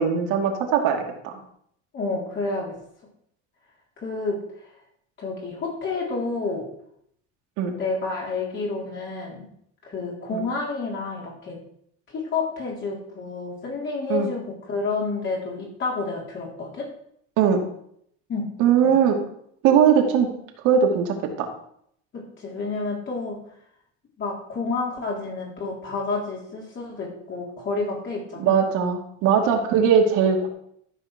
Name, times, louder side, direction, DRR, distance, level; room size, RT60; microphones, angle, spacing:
voice 1, 0.0-1.4 7.6-7.7 10.3-10.4 14.1-14.3 17.4-17.6 18.6-19.2 19.6-20.3 20.6-21.5 28.4-30.5, right 7 dB, 65° right, 2 dB, 2.6 m, -20 dB
voice 2, 1.9-2.8 4.0-4.7 5.2-6.7 7.8-9.5 9.8-11.6 12.1-16.9 18.3-18.5 18.8-19.0 22.1-23.4 24.2-28.6, left 3 dB, 35° left, -3 dB, 3.8 m, -29 dB
13.5 x 5.8 x 6.0 m, 0.69 s
cardioid pair, 130°, 33 cm